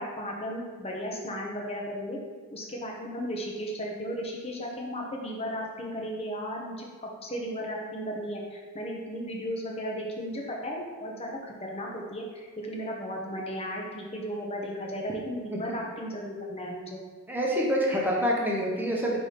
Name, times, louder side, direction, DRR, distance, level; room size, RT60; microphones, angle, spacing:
voice 1, 0.0-2.2 2.5-17.0, equal, 30° left, -1 dB, 0.9 m, -35 dB
voice 2, 17.3-19.2, equal, 10° right, -3 dB, 0.9 m, -26 dB
4.9 x 3.9 x 5.1 m, 1.5 s
head